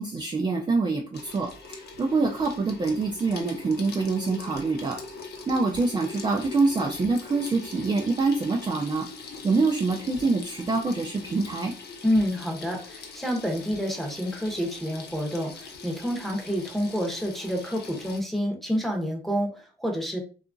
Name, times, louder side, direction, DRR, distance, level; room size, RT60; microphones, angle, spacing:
voice 1, 0.0-5.0 5.5-11.7, right 3 dB, 25° right, 1 dB, 0.4 m, -25 dB
Water tap faucet / Sink (filling or washing), 1.1-18.2, left 4 dB, 55° left, 0.7 m, -42 dB
voice 2, 12.0-20.2, equal, ahead, 0 dB, 0.8 m, -28 dB
2.8 x 2.3 x 2.5 m, 0.37 s
cardioid pair, 90°, 20 cm